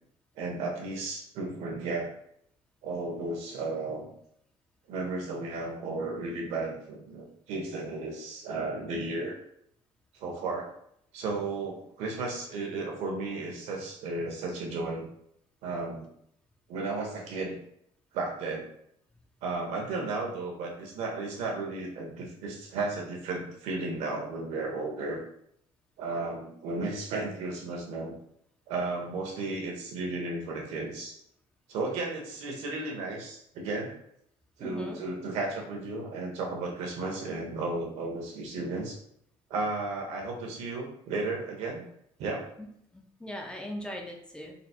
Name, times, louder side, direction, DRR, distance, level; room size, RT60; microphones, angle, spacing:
voice 1, 0.4-2.1 2.8-4.1 4.9-9.4 10.1-10.7 11.1-15.1 15.6-16.1 16.7-17.6 18.1-18.7 19.4-25.2 26.0-28.1 28.7-31.1 31.7-33.9 34.6-39.0 39.5-41.8 42.2-42.4, right 3 dB, 75° right, 0 dB, 1.2 m, -34 dB
voice 2, 34.6-35.0 42.6-42.7 42.9-44.5, left 1 dB, 10° left, 1 dB, 0.5 m, -39 dB
4.1 x 2.1 x 4.3 m, 0.70 s
cardioid pair, 145°, 11 cm